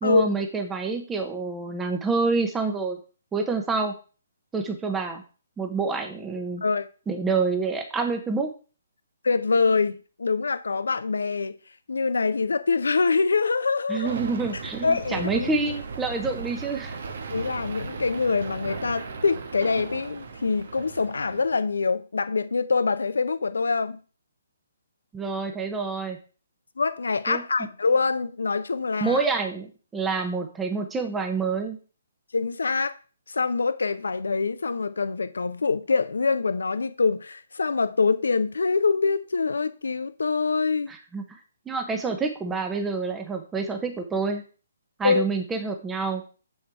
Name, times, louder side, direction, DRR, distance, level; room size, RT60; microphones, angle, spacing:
voice 1, 0.0-3.0 3.3-3.9 4.5-5.2 5.6-6.6 7.1-8.5 13.9-17.0 25.1-26.2 27.3-27.4 29.0-29.7 29.9-31.8 40.9-41.4 41.7-44.4 45.0-46.2, right 4 dB, 10° right, 1.0 m, -27 dB
voice 2, 9.2-11.6 11.9-14.2 14.5-15.5 17.3-24.0 26.8-29.2 32.3-33.0 33.3-40.9 45.0-45.2, left 4 dB, 70° left, 0.8 m, -25 dB
sound 1, 14.0-21.6, right 4 dB, 55° right, 1.4 m, -37 dB
7.3 x 6.4 x 4.7 m
figure-of-eight pair, 135°, 0 cm